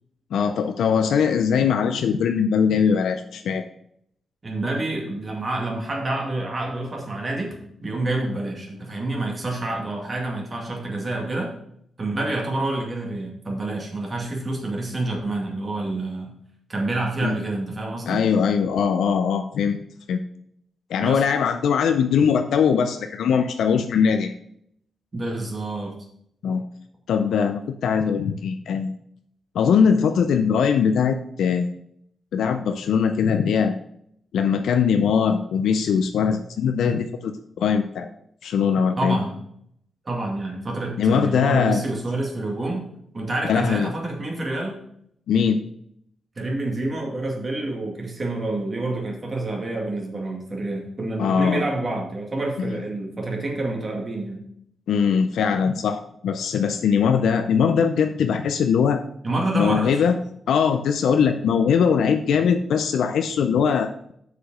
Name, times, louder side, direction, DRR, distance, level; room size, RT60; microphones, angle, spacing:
voice 1, 0.3-3.6 17.2-17.4 18.1-19.8 20.1-20.2 20.9-24.3 26.4-26.6 27.1-28.9 29.5-31.8 32.3-33.8 34.3-38.1 38.4-39.2 41.0-41.8 43.4-43.9 45.3-45.7 51.2-51.6 52.6-52.8 54.9-59.0 59.5-60.2 60.5-63.9, left 6 dB, 90° left, 7 dB, 0.5 m, -21 dB
voice 2, 4.4-7.6 7.8-11.5 12.0-16.3 16.7-18.2 21.0-21.2 25.1-25.9 39.0-39.4 40.1-42.8 43.1-44.8 46.4-54.4 59.2-60.0, right 2 dB, 30° right, -1 dB, 2.2 m, -28 dB
6.5 x 5.1 x 6.2 m, 0.71 s
cardioid pair, 115°, 0 cm